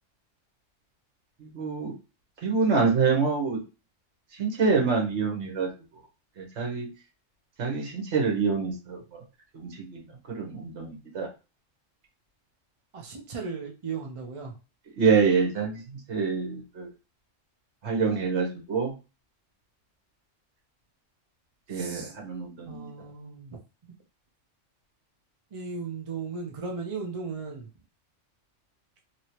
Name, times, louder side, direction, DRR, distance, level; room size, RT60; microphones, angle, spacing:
voice 1, 1.5-1.9 2.4-3.6 4.4-5.7 6.4-6.9 7.6-9.2 9.5-10.0 10.3-11.3 15.0-15.8 16.1-16.9 17.8-18.9 21.7-22.9, right 5 dB, 65° right, -1 dB, 1.3 m, -26 dB
voice 2, 12.9-14.5 21.7-22.1 22.6-23.6 25.5-27.7, right 5 dB, 40° right, 0 dB, 0.5 m, -36 dB
3.0 x 2.8 x 2.9 m, 0.31 s
omnidirectional pair, 1.3 m